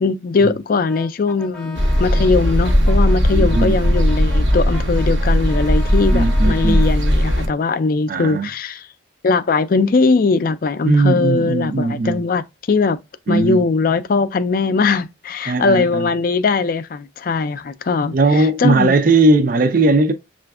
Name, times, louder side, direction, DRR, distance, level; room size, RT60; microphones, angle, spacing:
voice 1, 0.0-8.9 9.2-13.0 13.3-18.9, left 4 dB, 50° left, 0.4 m, -20 dB
Brass instrument, 0.9-7.0, left 3 dB, 5° left, 0.6 m, -38 dB
sound 1, 1.7-7.5, equal, 85° right, 1.0 m, -17 dB
voice 2, 3.3-3.7 6.1-6.8 8.1-8.5 10.8-12.2 13.3-13.6 15.5-16.1 18.1-20.1, right 2 dB, 50° right, 0.5 m, -17 dB
6.6 x 2.5 x 2.3 m
head